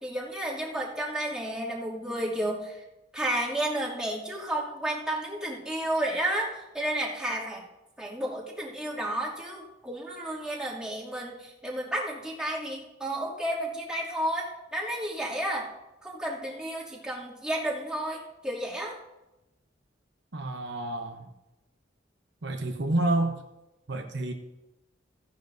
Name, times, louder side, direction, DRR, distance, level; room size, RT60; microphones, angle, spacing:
voice 1, 0.0-2.8 3.1-7.6 8.0-15.7 16.0-19.0, right 1 dB, 5° right, -6 dB, 2.6 m, -32 dB
voice 2, 20.3-21.3 22.4-23.4 23.9-24.3, right 2 dB, 65° right, 4 dB, 0.9 m, -29 dB
15.5 x 10.5 x 2.7 m, 0.96 s
head